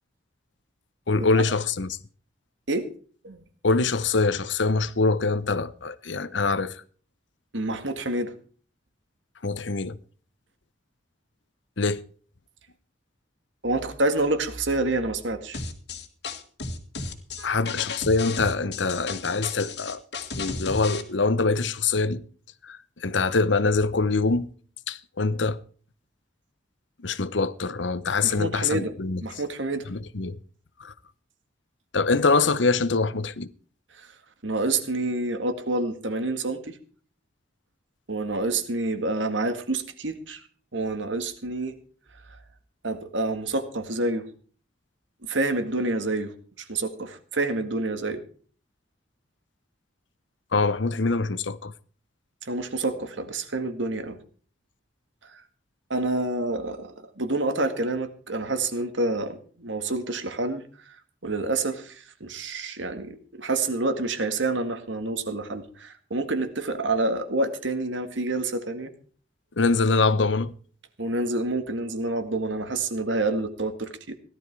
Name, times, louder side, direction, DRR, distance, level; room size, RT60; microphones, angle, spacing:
voice 1, 1.1-2.0 3.6-6.8 9.4-10.0 11.8-12.0 17.4-20.0 20.4-22.2 22.6-24.5 24.9-25.6 27.0-29.2 29.9-30.4 30.8-30.9 31.9-33.5 50.5-51.7 69.6-70.5, left 3 dB, 75° left, 0.9 m, -24 dB
voice 2, 7.5-8.3 13.6-15.6 17.4-17.6 28.2-28.9 29.2-29.9 34.4-36.8 38.1-40.4 40.7-41.8 42.8-44.3 45.2-46.3 46.6-48.2 52.5-54.2 55.2-55.3 55.9-60.6 61.2-68.9 71.0-74.1, right 2 dB, 80° right, 2.0 m, -28 dB
sound 1, 15.5-21.0, left 4 dB, 60° left, 1.8 m, -34 dB
17.0 x 12.0 x 4.7 m
head